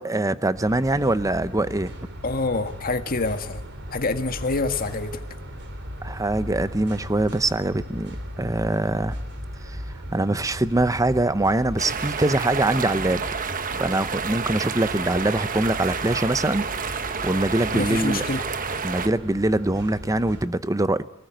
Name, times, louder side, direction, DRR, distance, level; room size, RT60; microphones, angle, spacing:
voice 1, 0.0-1.9 6.0-9.2 9.6-9.8 10.1-13.2 13.7-16.6 17.2-18.2 18.8-21.0, right 2 dB, 15° right, 0.8 m, -23 dB
sound 1, 0.5-20.5, equal, 55° right, 3.9 m, -38 dB
voice 2, 2.2-3.6 3.9-5.2 17.7-18.4, left 3 dB, 45° left, 1.7 m, -26 dB
sound 2, 11.8-19.1, right 5 dB, 40° right, 1.2 m, -29 dB
24.0 x 19.5 x 9.1 m
head